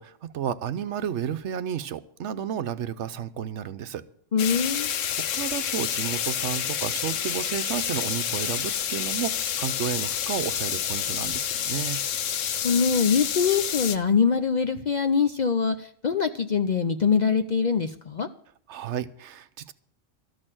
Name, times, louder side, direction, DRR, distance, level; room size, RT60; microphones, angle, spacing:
voice 1, 0.0-4.0 5.2-12.0 18.7-19.7, right 9 dB, 70° right, 12 dB, 1.0 m, -32 dB
voice 2, 4.3-4.9 12.6-18.3, left 6 dB, 50° left, 7 dB, 0.5 m, -23 dB
sound 1, 4.4-14.0, left 9 dB, 85° left, 1.1 m, -29 dB
13.0 x 6.6 x 8.9 m, 0.62 s
omnidirectional pair, 1.3 m